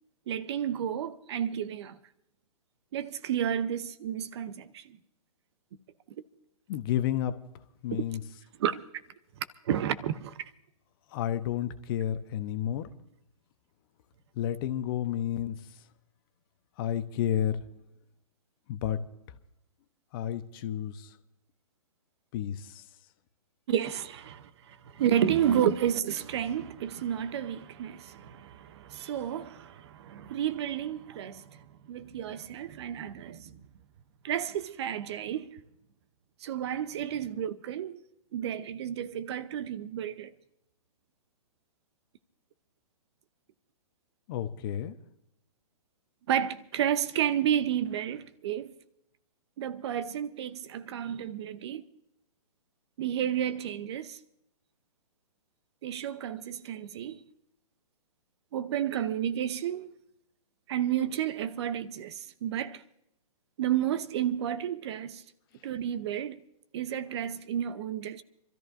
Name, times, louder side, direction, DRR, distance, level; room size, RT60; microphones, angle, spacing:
voice 1, 0.3-2.0 2.9-5.0 7.9-8.0 8.6-8.8 9.7-10.5 23.7-31.6 31.9-33.6 34.2-35.6 36.4-38.0 38.3-40.3 46.3-48.7 49.6-51.8 53.0-54.2 55.8-57.2 58.5-59.9 60.7-62.8 63.6-65.2 65.6-66.4 66.7-68.2, right 10 dB, 45° right, 0.8 m, -31 dB
voice 2, 6.7-7.3 7.8-8.2 11.1-12.9 14.4-15.6 16.8-17.6 18.7-19.0 20.1-21.1 22.3-22.8 44.3-44.9, left 11 dB, 40° left, 1.0 m, -31 dB
28.0 x 13.5 x 2.6 m
hypercardioid pair, 130°, 19 cm